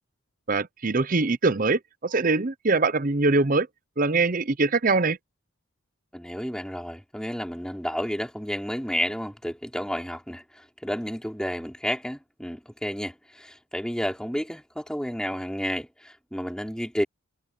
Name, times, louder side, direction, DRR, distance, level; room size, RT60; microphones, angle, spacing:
voice 1, 0.5-3.7 4.0-5.2, right 3 dB, 40° right, 0.7 m, -23 dB
voice 2, 6.1-17.0, equal, 5° left, 5.3 m, -31 dB
head